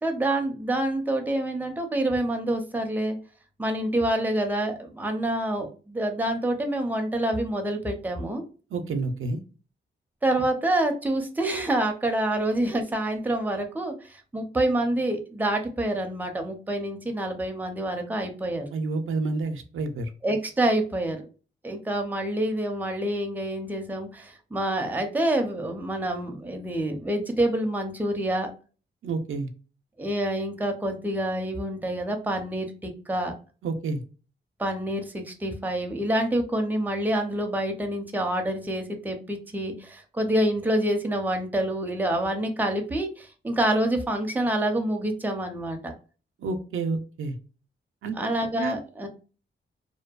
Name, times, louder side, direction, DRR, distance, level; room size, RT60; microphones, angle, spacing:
voice 1, 0.0-3.2 3.6-8.4 10.2-18.7 20.2-21.3 21.6-28.5 30.0-33.3 34.6-45.9 48.2-49.1, right 1 dB, 10° right, 4 dB, 0.5 m, -27 dB
voice 2, 8.7-9.4 18.7-20.1 29.0-29.5 33.6-34.0 46.4-47.3 48.0-48.2 48.6-48.8, right 3 dB, 85° right, 7 dB, 0.4 m, -29 dB
2.6 x 2.2 x 2.2 m, 0.36 s
wide cardioid pair, 95°, 20 cm